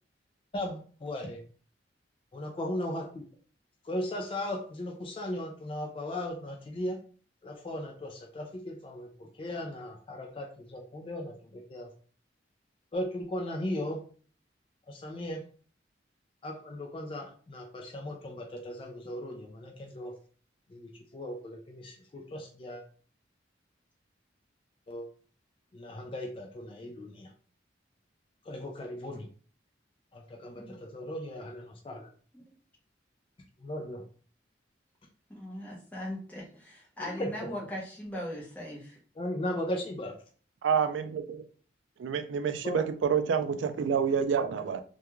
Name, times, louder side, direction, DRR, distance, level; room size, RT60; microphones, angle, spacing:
voice 1, 0.5-1.4 2.3-3.2 3.8-7.0 7.4-11.9 12.9-14.0 14.9-15.5 16.4-20.1 20.7-22.8 24.9-25.1 25.7-27.3 28.4-29.3 30.1-32.1 33.6-34.0 37.0-37.5 39.2-40.2 42.6-42.8, left 1 dB, 30° left, 2 dB, 0.3 m, -37 dB
voice 2, 35.3-39.0, left 1 dB, 10° left, -5 dB, 0.7 m, -39 dB
voice 3, 40.6-41.4 42.0-44.8, right 6 dB, 80° right, 8 dB, 0.3 m, -28 dB
2.3 x 2.2 x 3.0 m, 0.42 s
head